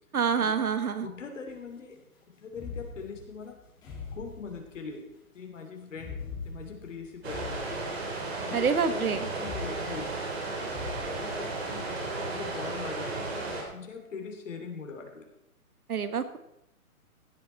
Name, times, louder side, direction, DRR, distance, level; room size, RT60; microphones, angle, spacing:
voice 1, 0.1-1.1 8.5-9.2 15.9-16.4, right 6 dB, 75° right, 11 dB, 1.7 m, -27 dB
voice 2, 1.0-2.0 2.3-3.6 4.1-6.2 6.4-7.9 8.4-15.3, left 5 dB, 55° left, 3 dB, 3.2 m, -41 dB
sound 1, 1.5-1.6 2.5-5.1 5.9-8.5 8.8-8.9 9.3-11.9, left 4 dB, 10° left, 2.6 m, -43 dB
sound 2, 7.2-13.6, right 3 dB, 45° right, 3.7 m, -34 dB
16.0 x 11.0 x 4.2 m, 0.83 s
hypercardioid pair, 165°, 44 cm